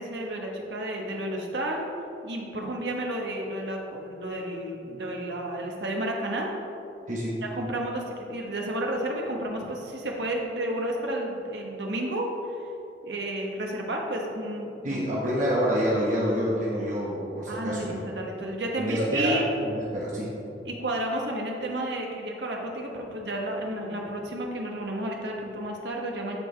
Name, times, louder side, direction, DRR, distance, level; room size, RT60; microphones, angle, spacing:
voice 1, 0.0-1.9 2.2-6.5 7.5-12.6 13.0-15.0 17.5-19.4 20.6-26.4, right 1 dB, 80° right, 0 dB, 1.2 m, -31 dB
voice 2, 7.1-7.4 14.8-18.0 18.4-18.5 18.8-19.4 19.6-20.3, equal, 45° right, -6 dB, 1.2 m, -27 dB
13.0 x 4.8 x 3.3 m, 2.8 s
head